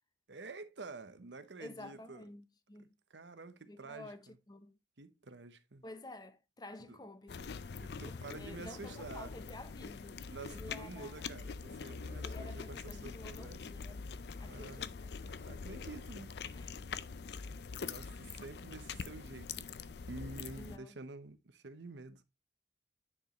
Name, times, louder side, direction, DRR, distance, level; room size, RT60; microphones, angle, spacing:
voice 1, 0.3-2.2 2.8-4.4 5.0-5.8 6.9-7.0 7.8-9.4 10.3-13.6 14.4-14.9 15.4-16.4 17.8-19.7 20.1-22.2, right 3 dB, 90° right, 0.9 m, -49 dB
voice 2, 1.6-2.9 3.7-4.8 5.8-7.6 8.1-11.1 12.2-14.0 14.4-15.1 16.5-16.7 20.5-21.0, left 1 dB, 25° left, 0.7 m, -51 dB
sound 1, 7.3-20.8, left 5 dB, 65° left, 0.5 m, -44 dB
9.7 x 5.1 x 3.0 m
head